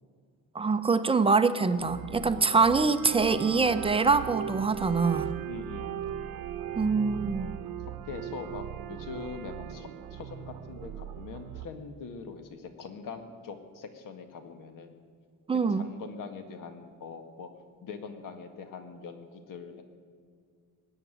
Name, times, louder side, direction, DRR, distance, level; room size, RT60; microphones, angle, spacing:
voice 1, 0.5-5.3 6.8-7.6 15.5-15.8, right 4 dB, 15° right, 10 dB, 0.6 m, -24 dB
sound 1, 1.8-11.7, right 9 dB, 85° right, 1.1 m, -38 dB
voice 2, 5.5-6.0 7.8-15.0 15.8-17.5 17.8-19.8, left 5 dB, 70° left, 7 dB, 1.9 m, -43 dB
19.5 x 8.1 x 9.2 m, 2.1 s
cardioid pair, 160°, 34 cm